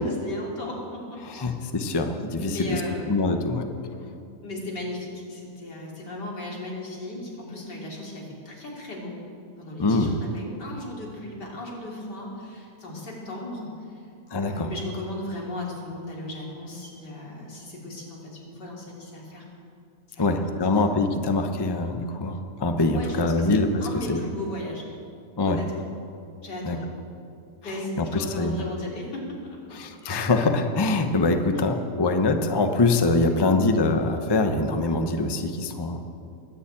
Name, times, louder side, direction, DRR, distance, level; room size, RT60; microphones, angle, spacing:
voice 1, 0.0-1.5 2.4-3.4 4.4-9.1 9.6-14.0 14.4-19.5 20.1-20.3 22.8-24.9 25.5-25.9 26.4-26.9 27.6-29.6 33.2-33.5, left 1 dB, 85° left, -3 dB, 3.7 m, -36 dB
voice 2, 1.2-2.8 3.1-3.7 9.8-10.1 14.3-14.7 20.2-23.7 23.9-24.2 25.4-25.6 26.6-26.8 28.0-28.6 29.7-36.0, left 2 dB, 20° left, 6 dB, 0.7 m, -24 dB
21.5 x 7.2 x 8.7 m, 2.6 s
omnidirectional pair, 1.8 m